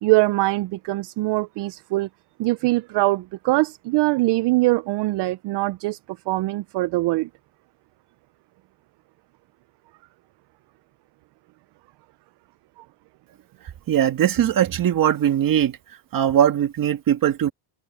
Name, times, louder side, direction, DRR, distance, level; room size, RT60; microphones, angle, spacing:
voice 1, 0.0-2.1 2.4-6.0 6.3-7.3 12.8-12.9, right 21 dB, 55° right, 0.5 m, -22 dB
voice 2, 13.9-15.8 16.1-17.5, right 10 dB, 40° right, 2.0 m, -20 dB
open air
cardioid pair, 160°, 49 cm